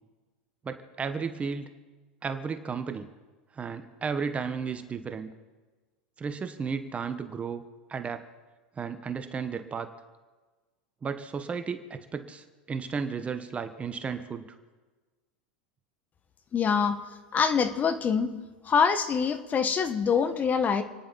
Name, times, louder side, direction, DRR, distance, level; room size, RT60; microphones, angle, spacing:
voice 1, 0.6-1.7 2.2-3.1 3.6-5.3 6.2-7.6 7.9-8.2 8.8-9.9 11.0-14.5, right 5 dB, 25° right, 9 dB, 1.2 m, -34 dB
voice 2, 16.5-17.0 17.3-18.3 18.6-20.8, left 6 dB, 30° left, 10 dB, 1.4 m, -25 dB
29.0 x 10.5 x 4.2 m, 1.3 s
hypercardioid pair, 105°, 6 cm